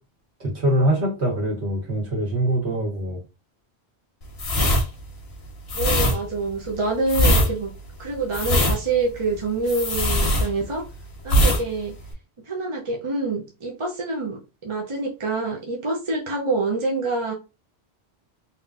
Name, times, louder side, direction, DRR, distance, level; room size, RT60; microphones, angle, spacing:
voice 1, 0.4-3.2, right 1 dB, 90° right, 1.7 m, -23 dB
sound 1, 4.3-10.9 11.2-11.6 11.9-12.1, equal, 75° left, 1.3 m, -21 dB
voice 2, 5.7-7.7 8.0-10.8 11.2-12.0 12.5-17.3, right 3 dB, 35° right, 0.6 m, -26 dB
3.6 x 2.8 x 2.4 m
omnidirectional pair, 1.1 m